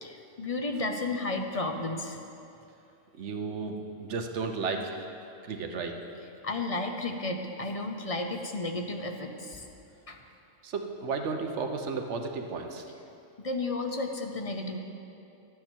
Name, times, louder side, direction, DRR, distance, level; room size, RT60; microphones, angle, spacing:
voice 1, 0.0-2.2 6.4-9.7 10.1-10.2 13.4-14.8, left 2 dB, 40° left, 3 dB, 0.6 m, -33 dB
voice 2, 3.2-5.0 5.5-6.0 10.6-12.8, right 4 dB, 65° right, 4 dB, 1.1 m, -33 dB
12.0 x 9.4 x 4.5 m, 2.7 s
omnidirectional pair, 1.3 m